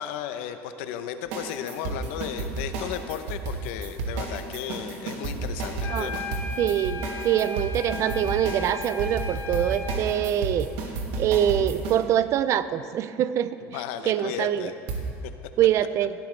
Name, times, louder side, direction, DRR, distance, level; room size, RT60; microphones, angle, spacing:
voice 1, 0.0-6.2 13.6-14.7, left 9 dB, 80° left, 9 dB, 0.8 m, -34 dB
sound 1, 1.3-12.0 14.9-15.0, right 3 dB, 80° right, 2.1 m, -31 dB
sound 2, 5.8-10.1, left 4 dB, 40° left, 1.7 m, -36 dB
voice 2, 6.6-10.7 11.2-13.6 14.1-14.7 15.6-16.1, right 10 dB, 50° right, 14 dB, 0.5 m, -24 dB
17.5 x 13.0 x 3.3 m, 2.7 s
supercardioid pair, 115°, 7 cm